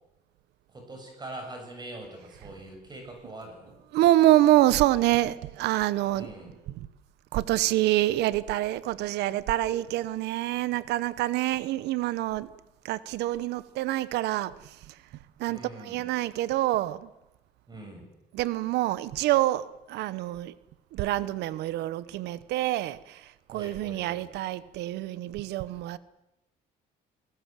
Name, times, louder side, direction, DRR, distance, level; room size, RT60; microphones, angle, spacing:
voice 1, 0.7-3.8 6.1-6.5 15.5-16.0 17.7-18.1 23.5-24.3, right 2 dB, 25° right, 7.2 m, -43 dB
voice 2, 3.9-6.3 6.8-6.9 7.3-12.5 12.8-15.0 15.4-17.1 18.3-20.5 20.9-26.0, right 15 dB, 85° right, 1.0 m, -26 dB
28.0 x 18.0 x 7.5 m
cardioid pair, 110°, 17 cm